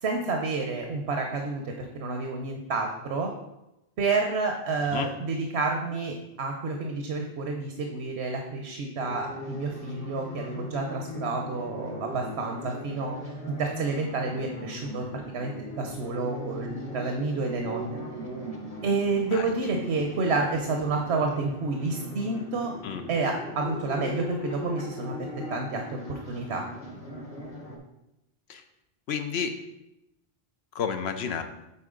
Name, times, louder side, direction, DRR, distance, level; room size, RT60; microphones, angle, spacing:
voice 1, 0.0-3.3 4.0-13.1 13.5-15.5 15.8-18.0 18.8-22.7 23.1-25.1 25.5-26.7, right 3 dB, 80° right, 2 dB, 1.0 m, -29 dB
sound 1, 9.0-27.8, equal, 35° left, 1.1 m, -39 dB
voice 2, 29.1-29.5 30.7-31.4, left 7 dB, 75° left, 7 dB, 0.9 m, -30 dB
8.3 x 4.4 x 3.8 m, 0.91 s
omnidirectional pair, 1.1 m